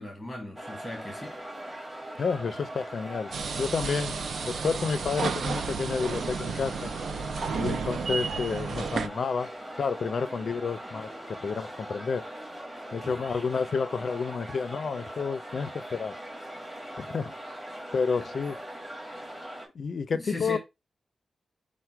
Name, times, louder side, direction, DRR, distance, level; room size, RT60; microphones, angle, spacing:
voice 1, 0.0-1.4 13.0-13.3 18.2-18.6 20.1-20.6, left 1 dB, 5° left, 1.2 m, -39 dB
sound 1, 0.6-19.7, right 1 dB, 10° right, 1.8 m, -41 dB
voice 2, 2.2-3.3 3.6-4.1 4.5-6.9 7.6-9.5 9.8-12.2 12.9-16.1 16.9-17.3 17.9-18.6 19.7-20.6, left 5 dB, 60° left, 0.4 m, -30 dB
sound 2, 3.3-9.1, right 5 dB, 80° right, 0.4 m, -32 dB
5.6 x 2.1 x 4.4 m
wide cardioid pair, 125°, 0 cm